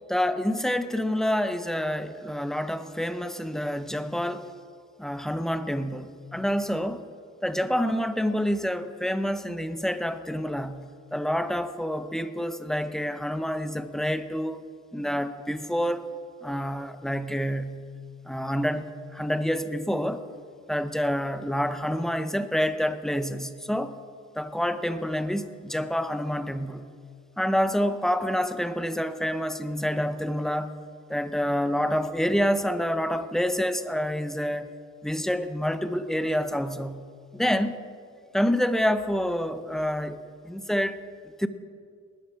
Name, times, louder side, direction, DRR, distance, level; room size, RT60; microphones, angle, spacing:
voice 1, 0.1-4.5 5.0-7.0 7.4-14.7 14.9-16.0 16.4-17.9 18.3-20.2 20.7-23.9 24.3-26.8 27.4-30.7 31.1-34.7 35.0-37.1 37.3-37.8 38.3-41.0 41.4-41.5, equal, ahead, 10 dB, 0.8 m, -27 dB
19.0 x 12.5 x 4.8 m, 2.2 s
cardioid pair, 95°, 30 cm